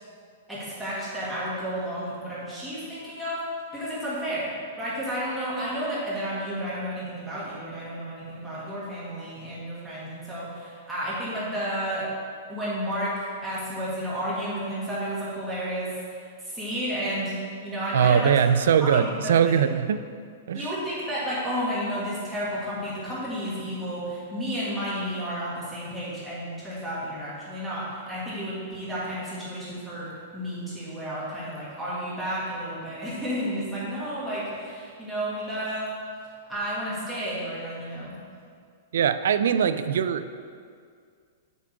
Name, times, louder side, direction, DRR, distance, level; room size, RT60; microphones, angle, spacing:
voice 1, 0.5-3.4 3.7-12.1 12.5-18.4 18.8-19.6 20.5-35.9 36.5-38.2, equal, 5° right, -10 dB, 1.7 m, -32 dB
voice 2, 17.9-20.0 20.5-20.7 38.9-40.3, right 8 dB, 70° right, 12 dB, 0.3 m, -21 dB
8.0 x 3.7 x 5.9 m, 2.1 s
supercardioid pair, 175°, 0 cm